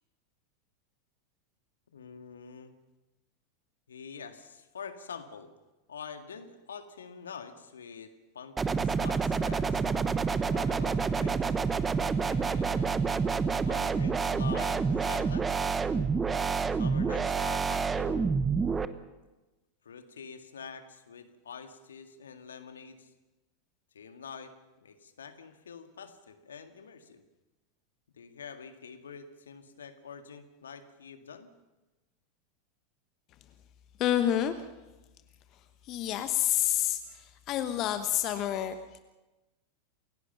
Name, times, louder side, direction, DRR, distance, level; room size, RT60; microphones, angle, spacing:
voice 1, 1.9-2.7 3.9-5.5 5.9-9.8 10.5-11.6 12.3-13.0 13.7-15.9 16.8-18.2 19.8-23.1 23.9-27.2 28.1-31.5, left 6 dB, 70° left, 7 dB, 1.8 m, -46 dB
sound 1, 8.6-18.9, right 5 dB, 15° right, 1.1 m, -28 dB
voice 2, 34.0-34.7 35.8-38.8, left 11 dB, 40° left, 9 dB, 1.1 m, -28 dB
28.5 x 17.0 x 5.8 m, 1.1 s
figure-of-eight pair, 85°, 0 cm